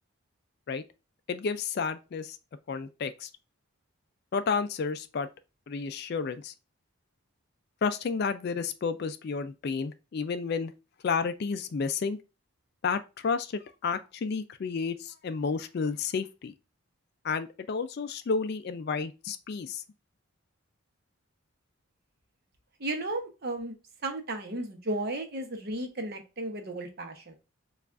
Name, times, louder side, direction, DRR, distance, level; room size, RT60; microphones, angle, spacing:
voice 1, 1.3-2.4 2.7-3.3 4.3-5.3 5.7-6.5 7.8-10.7 11.0-12.2 12.8-16.5 17.2-19.8, left 5 dB, 50° left, 0.3 m, -31 dB
voice 2, 22.8-23.7 24.0-27.4, right 2 dB, 45° right, 0.8 m, -34 dB
6.8 x 2.4 x 2.4 m
head